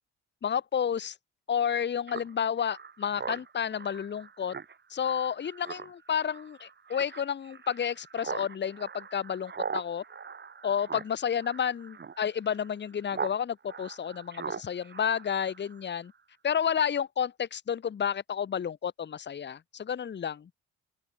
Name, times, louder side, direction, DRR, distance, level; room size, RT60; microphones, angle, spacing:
voice 1, 0.4-1.1 1.5-4.5 4.9-10.0 10.6-16.1 16.4-20.5, left 8 dB, 35° left, 1.0 m, -31 dB
Speech synthesizer, 2.1-13.4 13.7-15.9, right 6 dB, 35° right, 2.6 m, -41 dB
open air
cardioid pair, 90°, 30 cm